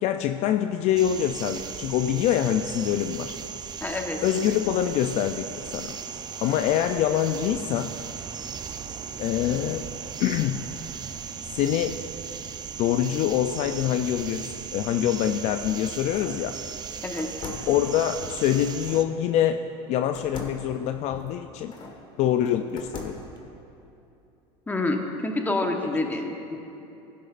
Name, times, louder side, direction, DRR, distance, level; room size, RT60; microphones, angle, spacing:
voice 1, 0.0-3.3 4.2-6.0 6.4-7.9 9.2-9.9 10.2-10.7 11.5-12.0 12.8-16.5 17.7-19.6 19.9-21.7 22.2-23.2 25.8-25.9, left 10 dB, 50° left, 8 dB, 0.4 m, -25 dB
sound 1, 1.0-19.0, right 7 dB, 30° right, 0.6 m, -37 dB
voice 2, 3.8-4.2 17.0-17.3 24.7-26.6, left 2 dB, 10° left, 3 dB, 1.1 m, -27 dB
sound 2, 15.3-16.5 17.2-19.1 20.1-22.0 22.4-23.4, left 3 dB, 35° left, 1.5 m, -41 dB
16.0 x 10.0 x 2.5 m, 2.8 s
supercardioid pair, 110°, 14 cm